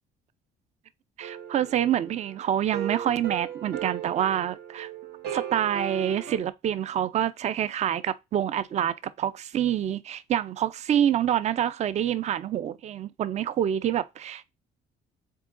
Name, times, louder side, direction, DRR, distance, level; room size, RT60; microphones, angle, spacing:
voice 1, 1.2-4.9 5.3-14.5, right 10 dB, 40° right, 0.4 m, -27 dB
sound 1, 1.2-6.4, right 8 dB, 75° right, 0.9 m, -37 dB
3.8 x 3.6 x 3.6 m
cardioid pair, 110°, 17 cm